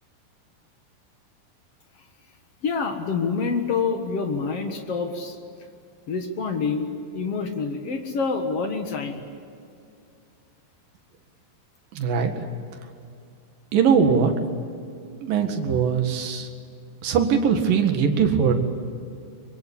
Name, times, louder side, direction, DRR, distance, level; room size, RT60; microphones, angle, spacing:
voice 1, 2.6-5.4 6.1-9.2, left 5 dB, 55° left, 5 dB, 1.8 m, -27 dB
voice 2, 11.9-12.3 13.7-14.3 15.2-16.5 17.0-18.5, right 6 dB, 65° right, 5 dB, 3.3 m, -21 dB
24.0 x 23.5 x 8.6 m, 2.4 s
omnidirectional pair, 4.7 m